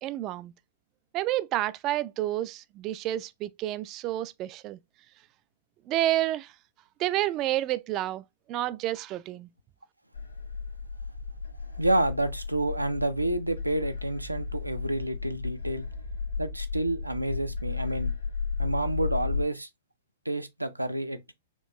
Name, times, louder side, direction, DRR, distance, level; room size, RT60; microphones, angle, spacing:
voice 1, 0.0-0.5 1.1-4.8 5.9-6.5 7.0-9.5, right 14 dB, 35° right, 0.3 m, -29 dB
sound 1, 10.1-19.4, left 5 dB, 80° left, 0.9 m, -34 dB
voice 2, 11.8-15.9 16.4-18.1 18.6-19.7 20.3-21.3, right 1 dB, 90° right, 0.5 m, -29 dB
4.4 x 3.0 x 2.9 m
figure-of-eight pair, 105°, 0 cm